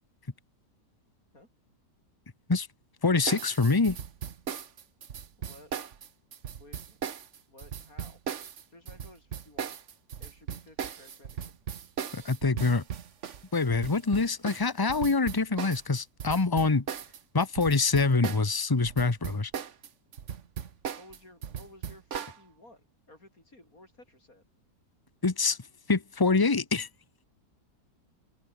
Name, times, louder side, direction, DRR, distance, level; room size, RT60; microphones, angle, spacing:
voice 1, 3.0-4.0 12.1-12.8 13.5-16.8 17.3-19.5 25.2-25.6 25.9-26.9, left 3 dB, 15° left, 1.0 m, -25 dB
sound 1, 3.3-18.6 18.9-22.4, right 8 dB, 50° right, 1.3 m, -38 dB
voice 2, 5.4-5.7 6.6-7.0 7.5-8.2 8.7-9.8 10.2-11.5 21.0-24.4, left 1 dB, 55° left, 8.6 m, -55 dB
open air
omnidirectional pair, 1.8 m